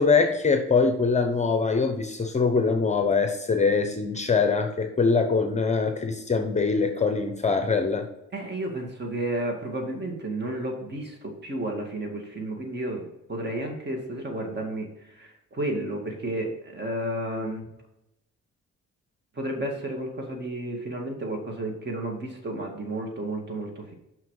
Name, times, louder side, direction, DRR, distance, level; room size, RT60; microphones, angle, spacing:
voice 1, 0.0-8.1, left 4 dB, 25° left, 6 dB, 0.9 m, -23 dB
voice 2, 8.3-14.9 15.2-17.7 19.4-23.9, right 1 dB, 35° right, 2 dB, 2.1 m, -32 dB
5.9 x 5.8 x 4.8 m, 0.88 s
cardioid pair, 90°, 30 cm